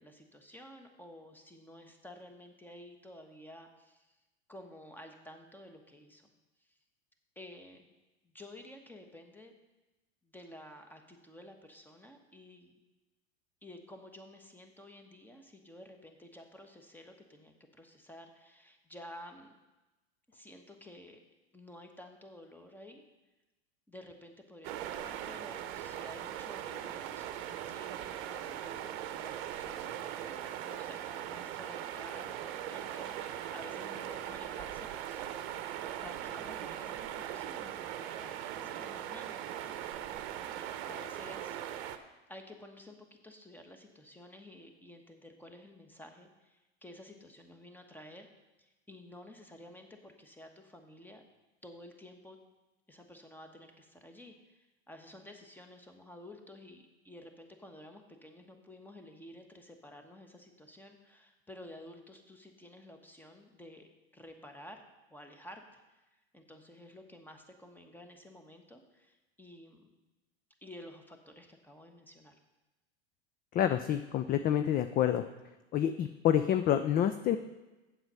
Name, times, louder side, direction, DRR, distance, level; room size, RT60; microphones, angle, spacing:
voice 1, 0.0-4.1 4.5-6.2 6.7-6.8 7.3-7.9 8.2-9.6 10.2-12.8 13.6-19.5 20.3-21.2 21.5-23.0 23.9-39.5 39.9-41.6 42.3-48.3 48.6-51.2 51.6-52.4 52.9-64.8 65.1-66.0 66.3-69.9 70.6-72.4, left 1 dB, 5° left, 5 dB, 1.2 m, -52 dB
sound 1, 24.6-42.0, right 11 dB, 60° right, 0.8 m, -40 dB
voice 2, 73.5-75.2 75.7-77.4, left 10 dB, 25° left, 9 dB, 0.4 m, -28 dB
7.7 x 7.5 x 5.5 m, 1.1 s
hypercardioid pair, 95°, 34 cm